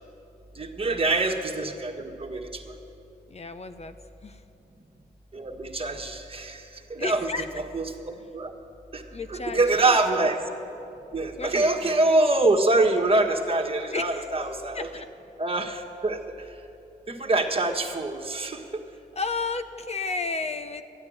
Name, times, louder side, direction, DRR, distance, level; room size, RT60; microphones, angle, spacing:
voice 1, 0.6-2.7 5.3-6.6 6.9-7.3 7.6-7.9 8.3-8.5 8.9-9.0 9.3-10.4 11.1-14.9 15.4-16.2 17.1-18.6, right 2 dB, 30° right, 2 dB, 1.6 m, -25 dB
voice 2, 3.3-4.0 4.2-4.4 7.0-7.5 9.1-10.0 11.4-11.9 13.9-14.3 14.7-15.1 19.2-20.8, left 4 dB, 35° left, 9 dB, 0.9 m, -32 dB
13.0 x 9.6 x 8.8 m, 2.8 s
supercardioid pair, 50°, 18 cm